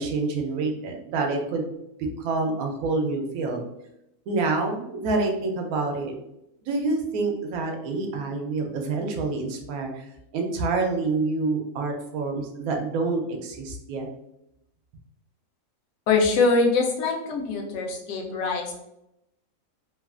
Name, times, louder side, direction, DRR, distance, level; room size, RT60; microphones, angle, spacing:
voice 1, 0.0-1.7 2.2-3.6 4.3-6.1 6.6-9.9 10.3-14.1, right 3 dB, 85° right, 2 dB, 1.1 m, -27 dB
voice 2, 16.1-18.8, left 4 dB, 65° left, 1 dB, 0.9 m, -23 dB
3.0 x 2.3 x 2.3 m, 0.84 s
omnidirectional pair, 1.5 m